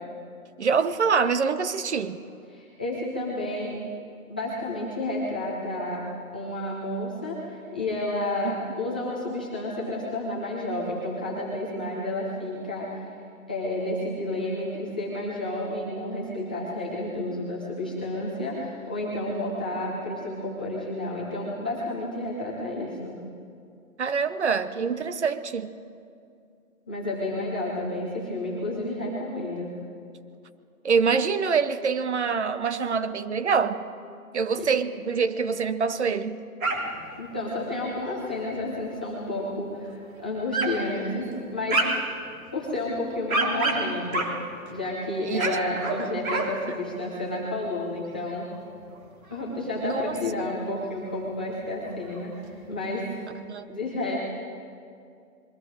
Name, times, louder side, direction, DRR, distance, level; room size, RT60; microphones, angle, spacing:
voice 1, 0.6-2.2 8.4-8.5 24.0-25.7 30.8-33.8 34.3-36.4 45.2-45.5 49.8-50.2 53.5-53.7, right 5 dB, 50° right, 12 dB, 1.0 m, -25 dB
voice 2, 2.5-3.8 4.3-13.1 13.5-23.1 26.9-29.7 34.6-34.7 37.2-41.8 42.5-48.5 49.3-53.1 53.7-54.2, left 1 dB, 5° left, -8 dB, 0.7 m, -31 dB
sound 1, 36.6-37.1 37.4-37.5 38.1-38.7 39.3-39.4 39.9-40.0 40.5-40.8 41.2-42.2 42.8-44.8 45.3-46.5 46.8-47.1 47.4-47.5 47.8-47.9 48.5-49.4 49.8-49.9 50.2-50.3 51.1-51.2 51.5-51.6 51.8-52.4, right 2 dB, 70° right, 3.7 m, -29 dB
28.0 x 22.0 x 4.8 m, 2.4 s
hypercardioid pair, 170°, 43 cm